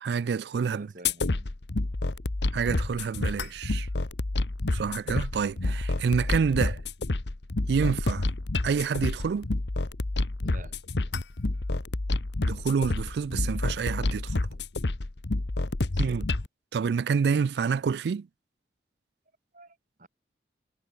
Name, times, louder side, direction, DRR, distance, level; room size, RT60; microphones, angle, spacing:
voice 1, 0.0-0.9 2.5-3.9 4.7-6.8 7.7-8.3 8.6-9.5 12.4-14.5 16.0-16.3 16.7-18.3, right 6 dB, 70° right, 0.3 m, -28 dB
voice 2, 0.7-1.5 10.4-10.8 15.6-16.2 19.5-20.1, right 1 dB, 45° right, 5.2 m, -49 dB
sound 1, 1.0-16.5, left 2 dB, 80° left, 1.1 m, -29 dB
head